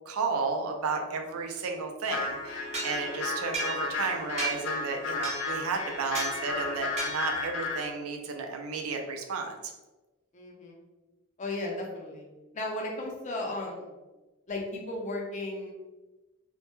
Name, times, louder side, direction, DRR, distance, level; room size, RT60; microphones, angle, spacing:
voice 1, 0.1-9.6, right 4 dB, 85° right, 4 dB, 0.4 m, -33 dB
sound 1, 2.1-7.9, left 3 dB, 90° left, 0.6 m, -34 dB
sound 2, 2.7-4.1 4.4-4.8 5.2-5.7 6.1-6.4 7.0-7.5, right 3 dB, 30° right, 0.6 m, -35 dB
voice 2, 10.3-10.8 11.4-12.3 12.5-13.9 14.5-15.7, left 2 dB, 35° left, -1 dB, 0.5 m, -35 dB
2.1 x 2.1 x 2.9 m, 1.1 s
head